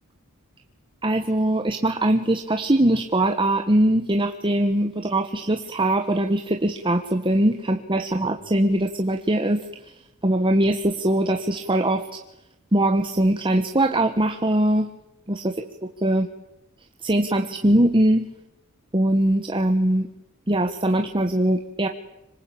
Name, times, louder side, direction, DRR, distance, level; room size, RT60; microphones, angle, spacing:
voice 1, 1.0-9.7 10.2-12.2 12.7-14.9 15.3-16.3 17.0-18.3 18.9-20.1 20.5-21.9, right 1 dB, 25° right, 5 dB, 1.4 m, -21 dB
26.5 x 25.0 x 8.7 m, 0.93 s
head